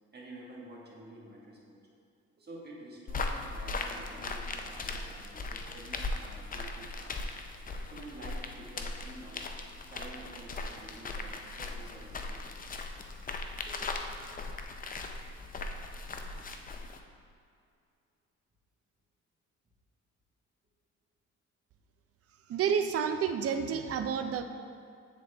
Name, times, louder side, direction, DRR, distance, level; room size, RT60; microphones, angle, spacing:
voice 1, 0.1-1.9 2.4-7.3 7.5-9.5 9.8-12.7 13.4-14.0, right 1 dB, 35° right, -3 dB, 1.5 m, -50 dB
sound 1, 3.1-17.0, left 3 dB, 30° left, 0.5 m, -39 dB
voice 2, 22.5-24.4, right 7 dB, 50° right, 8 dB, 0.4 m, -30 dB
9.1 x 4.1 x 3.3 m, 2.3 s
cardioid pair, 90°, 30 cm